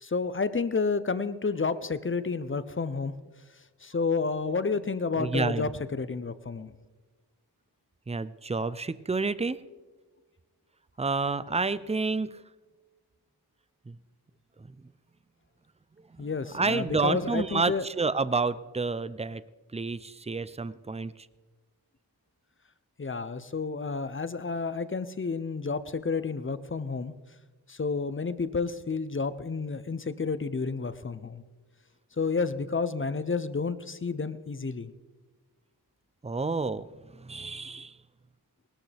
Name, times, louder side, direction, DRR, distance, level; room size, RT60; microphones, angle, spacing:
voice 1, 0.0-3.1 3.8-6.7 16.2-17.8 23.0-27.1 27.7-31.4 32.2-34.9, left 4 dB, 30° left, 13 dB, 0.6 m, -30 dB
voice 2, 5.2-5.7 8.1-9.6 11.0-12.4 13.9-14.0 14.6-14.9 16.1-16.3 16.5-19.4 19.7-21.3 36.2-38.0, right 4 dB, 15° right, 16 dB, 0.5 m, -29 dB
19.0 x 13.0 x 3.4 m, 1.3 s
wide cardioid pair, 95°, 39 cm